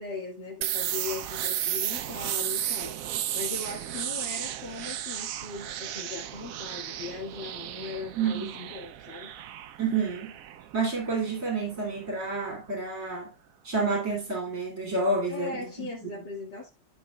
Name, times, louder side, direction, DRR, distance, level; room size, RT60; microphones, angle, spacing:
voice 1, 0.0-3.0 3.3-9.3 15.3-16.7, left 4 dB, 85° left, 3.0 m, -39 dB
sound 1, 0.6-12.2, right 11 dB, 65° right, 0.9 m, -34 dB
voice 2, 8.1-8.7 9.8-10.4 10.7-13.3 13.6-16.1, right 3 dB, 50° right, 3.1 m, -29 dB
12.5 x 5.7 x 2.3 m
omnidirectional pair, 1.9 m